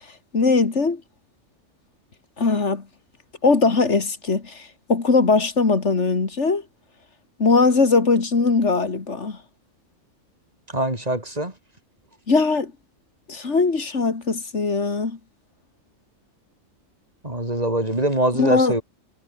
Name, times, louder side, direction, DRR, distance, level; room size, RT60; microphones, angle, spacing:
voice 1, 0.3-1.0 2.4-2.8 3.4-6.6 7.4-9.4 12.3-12.7 13.3-15.2 18.3-18.8, left 4 dB, 65° left, 2.7 m, -20 dB
voice 2, 10.7-11.5 17.2-18.8, right 1 dB, 30° right, 5.1 m, -23 dB
omnidirectional pair, 1.3 m